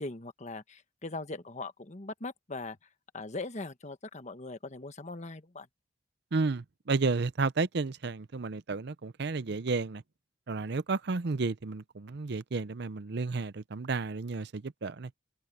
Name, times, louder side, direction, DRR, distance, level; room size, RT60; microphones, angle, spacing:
voice 1, 0.0-2.8 3.1-5.7, left 2 dB, 40° left, 1.4 m, -40 dB
voice 2, 6.3-10.0 10.5-15.1, right 4 dB, 60° right, 0.6 m, -32 dB
head